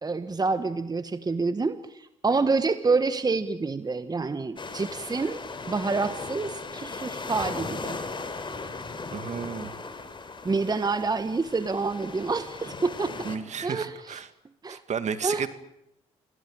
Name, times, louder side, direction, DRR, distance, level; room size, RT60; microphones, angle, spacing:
voice 1, 0.0-5.4 5.7-8.0 10.4-13.1 13.6-14.2 14.6-14.8 15.2-15.5, right 4 dB, 25° right, 11 dB, 1.5 m, -27 dB
sound 1, 4.6-13.4, left 4 dB, 35° left, 4.3 m, -37 dB
voice 2, 9.1-9.7 13.2-14.3 14.7-15.5, right 7 dB, 55° right, 11 dB, 2.3 m, -32 dB
27.0 x 19.5 x 9.0 m, 0.83 s
supercardioid pair, 60°, 15 cm